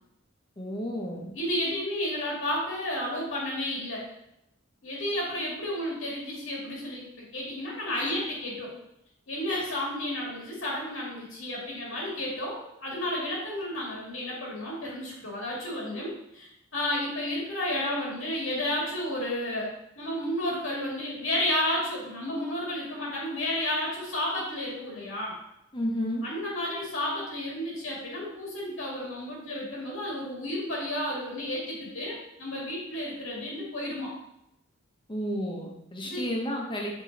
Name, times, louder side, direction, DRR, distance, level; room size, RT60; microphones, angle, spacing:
voice 1, 0.6-1.3 7.9-8.1 9.5-9.7 25.7-26.2 35.1-37.0, equal, 25° left, 0 dB, 1.1 m, -32 dB
voice 2, 1.3-4.0 4.8-8.7 9.3-25.3 26.2-34.1 36.0-36.3, left 1 dB, 80° left, -3 dB, 2.1 m, -32 dB
5.9 x 4.0 x 4.1 m, 0.84 s
head